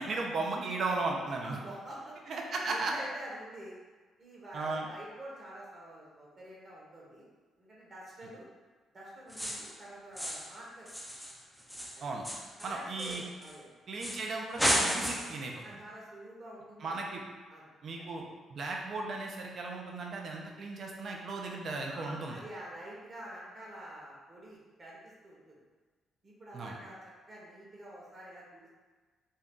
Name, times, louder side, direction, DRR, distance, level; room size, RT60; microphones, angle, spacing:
voice 1, 0.0-1.6 2.3-2.9 4.5-4.9 12.0-12.3 12.6-13.2 13.9-15.8 16.8-17.2 17.8-18.2 18.5-22.4 26.5-26.8, right 3 dB, 55° right, 0 dB, 0.5 m, -36 dB
voice 2, 1.3-2.2 2.7-3.8 4.2-7.2 7.6-8.4 8.9-11.1 11.9-12.1 12.6-13.7 15.6-17.0 17.5-17.6 18.0-18.1 21.9-25.6 26.2-28.7, right 1 dB, 35° right, -5 dB, 1.0 m, -47 dB
sound 1, 9.3-9.8 10.2-10.6 10.9-13.6 14.0-14.3 14.6-15.4, equal, ahead, 0.5 m, -33 dB
2.7 x 2.3 x 3.6 m, 1.4 s
cardioid pair, 90°, 0 cm